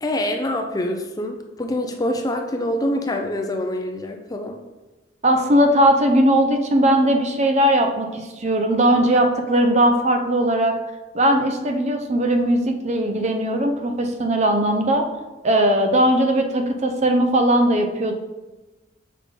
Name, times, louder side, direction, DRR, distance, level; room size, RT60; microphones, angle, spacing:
voice 1, 0.0-4.6, left 1 dB, 20° left, 4 dB, 0.5 m, -25 dB
voice 2, 5.2-10.8 11.1-15.1 15.4-18.1, right 1 dB, 35° right, 5 dB, 0.6 m, -19 dB
6.7 x 5.0 x 3.7 m, 1.1 s
head